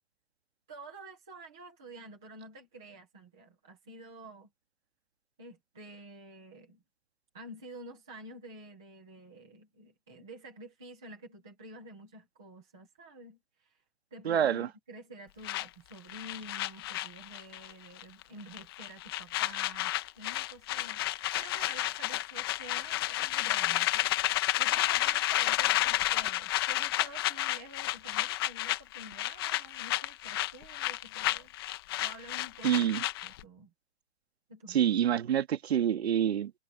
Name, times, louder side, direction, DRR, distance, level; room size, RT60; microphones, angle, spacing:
voice 1, 0.7-4.5 5.4-6.8 7.3-13.7 14.1-31.5 32.0-32.9 33.2-33.7 34.5-35.0, right 1 dB, 5° right, 0.4 m, -49 dB
voice 2, 14.3-14.7 32.6-33.0 34.7-36.6, right 10 dB, 70° right, 2.0 m, -27 dB
sound 1, 15.4-17.7 18.0-18.2 18.5-33.4, left 15 dB, 20° left, 0.8 m, -31 dB
hypercardioid pair, 175°, 33 cm